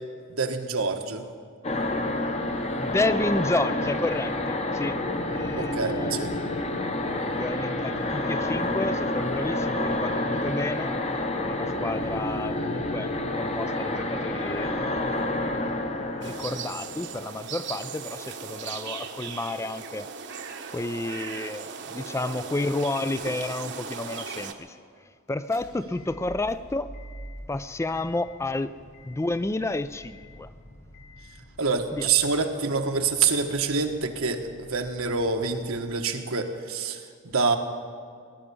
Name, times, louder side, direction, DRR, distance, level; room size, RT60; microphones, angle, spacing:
voice 1, 0.3-1.2 5.5-6.3 31.6-37.0 37.3-37.6, right 4 dB, 80° right, 5 dB, 1.4 m, -26 dB
sound 1, 1.6-17.6, left 1 dB, 30° left, 0.9 m, -29 dB
voice 2, 2.8-5.0 5.3-6.3 7.1-10.9 11.5-13.1 13.4-14.8 15.4-15.9 16.2-20.1 20.7-24.8 25.3-26.9 27.5-28.7 29.0-30.5 31.9-32.1, left 2 dB, 15° left, 13 dB, 0.3 m, -31 dB
sound 2, 16.2-24.5, right 6 dB, 55° right, 1.1 m, -38 dB
sound 3, 23.1-23.6 24.0-24.1 25.3-35.9, equal, 70° left, 3.1 m, -48 dB
19.0 x 11.0 x 7.0 m, 2.1 s
head